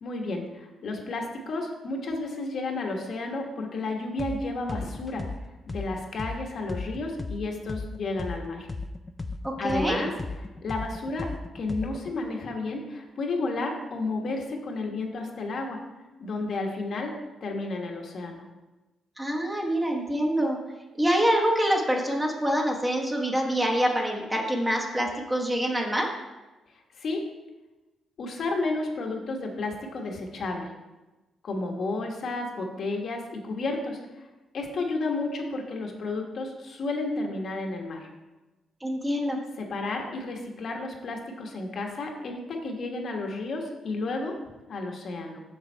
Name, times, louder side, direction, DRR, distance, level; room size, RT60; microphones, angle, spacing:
voice 1, 0.0-5.3 5.7-8.7 9.6-10.1 10.6-15.8 16.2-17.1 17.4-18.4 27.0-27.2 28.2-30.7 31.4-34.3 34.5-38.1 39.6-44.3 44.7-45.4, left 2 dB, 50° left, 2 dB, 1.2 m, -32 dB
sound 1, 4.2-4.4 4.7-8.4 8.7-12.1, left 3 dB, 15° left, 0.3 m, -35 dB
voice 2, 9.4-10.0 19.2-20.6 21.0-26.1 38.8-39.4, equal, 10° right, 0 dB, 1.0 m, -25 dB
6.9 x 6.6 x 4.4 m, 1.1 s
cardioid pair, 150°, 0 cm